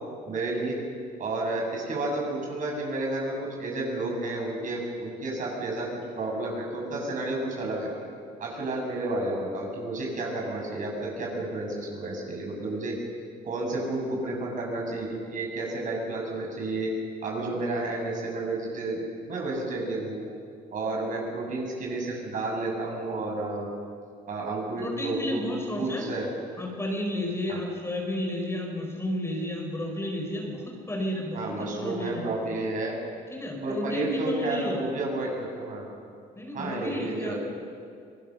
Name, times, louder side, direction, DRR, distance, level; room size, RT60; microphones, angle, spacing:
voice 1, 0.3-0.8 1.2-5.9 6.1-7.9 8.4-12.9 13.4-16.9 17.2-20.2 20.7-23.7 24.3-25.5 25.8-26.3 27.5-27.6 31.3-32.9 33.6-35.8 36.5-37.4, right 2 dB, 50° right, -1 dB, 7.7 m, -31 dB
voice 2, 24.8-26.1 26.6-32.2 33.3-34.8 36.3-37.3, left 1 dB, 15° left, 1 dB, 4.7 m, -32 dB
26.5 x 20.0 x 6.7 m, 2.3 s
cardioid pair, 110°, 17 cm